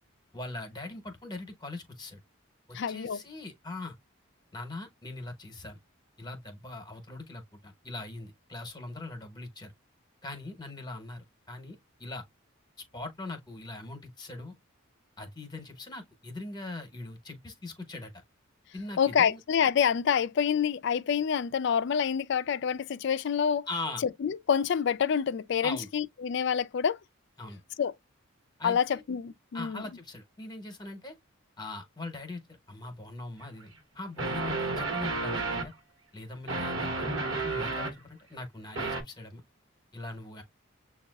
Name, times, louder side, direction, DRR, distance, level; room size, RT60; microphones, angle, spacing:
voice 1, 0.3-2.2 2.7-4.0 4.5-5.8 6.2-9.7 10.2-12.2 12.9-14.5 15.2-18.1 18.7-19.4 23.7-24.0 25.6-25.9 27.4-27.6 28.6-29.0 29.5-31.1 31.6-35.7 36.1-39.4 39.9-40.4, left 2 dB, 20° left, 0.8 m, -41 dB
voice 2, 2.7-3.2 19.0-23.7 24.0-27.0 27.8-27.9 28.6-29.8, left 7 dB, 55° left, 0.3 m, -27 dB
sound 1, 33.4-33.5 34.2-35.7 36.5-38.0 38.8-39.0, right 3 dB, 70° right, 1.1 m, -31 dB
6.8 x 2.3 x 2.2 m
head